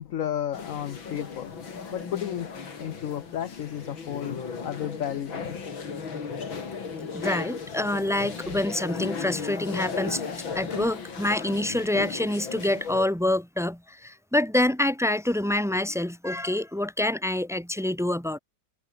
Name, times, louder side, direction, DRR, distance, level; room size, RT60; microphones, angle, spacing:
voice 1, 0.0-1.5 1.9-2.5 2.8-5.6, left 10 dB, 60° left, 0.9 m, -33 dB
sound 1, 0.5-13.1, left 5 dB, 85° left, 3.6 m, -36 dB
voice 2, 7.1-10.2 10.5-18.4, left 1 dB, ahead, 1.7 m, -26 dB
omnidirectional pair, 2.1 m